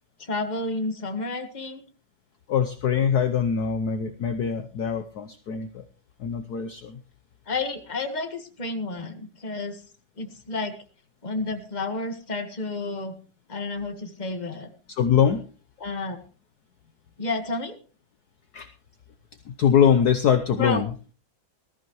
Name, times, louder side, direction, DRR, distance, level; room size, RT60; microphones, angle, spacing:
voice 1, 0.2-1.8 7.5-9.8 10.2-10.7 11.2-13.2 13.5-14.7 15.8-16.2 17.2-17.8 20.6-20.8, left 3 dB, 25° left, 6 dB, 1.6 m, -30 dB
voice 2, 2.5-5.8 6.2-7.0 14.9-15.4 18.5-18.7 19.5-20.9, left 8 dB, 60° left, 9 dB, 1.2 m, -23 dB
20.0 x 13.5 x 3.1 m, 0.36 s
omnidirectional pair, 2.2 m